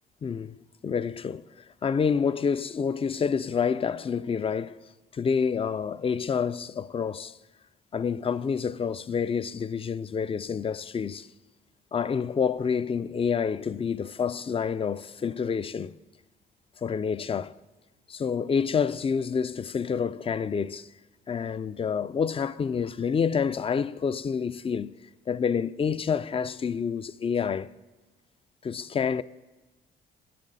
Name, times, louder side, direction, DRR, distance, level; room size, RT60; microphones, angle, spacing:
voice 1, 0.2-0.6 0.8-4.8 5.1-7.4 7.9-11.3 11.9-16.0 16.8-17.6 18.1-20.9 21.3-24.9 25.3-27.7 28.6-29.2, left 6 dB, 30° left, 0.4 m, -28 dB
19.5 x 9.9 x 4.1 m
cardioid pair, 90°, 20 cm